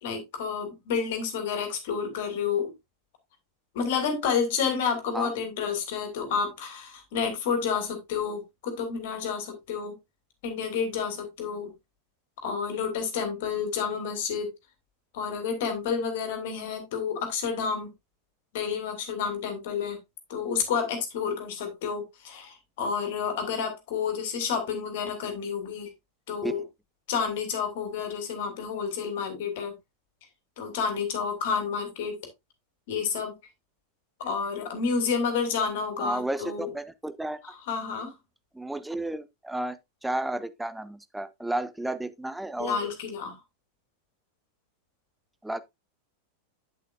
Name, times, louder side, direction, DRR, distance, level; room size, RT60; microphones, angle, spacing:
voice 1, 0.0-2.7 3.7-9.9 10.4-11.7 12.4-14.5 15.1-17.9 18.5-20.0 20.3-25.9 26.3-26.6 27.1-29.7 30.6-32.2 32.9-33.3 34.2-36.7 37.7-38.1 42.6-43.4, left 6 dB, 50° left, 2.8 m, -30 dB
voice 2, 36.0-37.4 38.5-42.9 45.4-45.6, right 1 dB, 5° right, 0.7 m, -32 dB
8.5 x 8.4 x 2.5 m
figure-of-eight pair, 90°, 0 cm